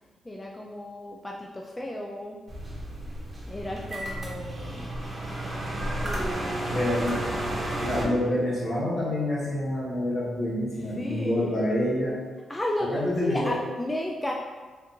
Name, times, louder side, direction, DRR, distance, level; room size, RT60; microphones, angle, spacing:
voice 1, 0.2-2.4 3.5-4.9 6.0-6.8 11.0-11.6 12.5-14.3, left 1 dB, 15° left, -2 dB, 0.4 m, -33 dB
sound 1, 2.5-8.0, right 1 dB, 30° right, 1.0 m, -32 dB
voice 2, 6.7-7.2 7.8-12.2 12.9-13.5, left 1 dB, 60° left, -6 dB, 1.4 m, -27 dB
3.6 x 3.4 x 3.0 m, 1.4 s
cardioid pair, 90°, 0 cm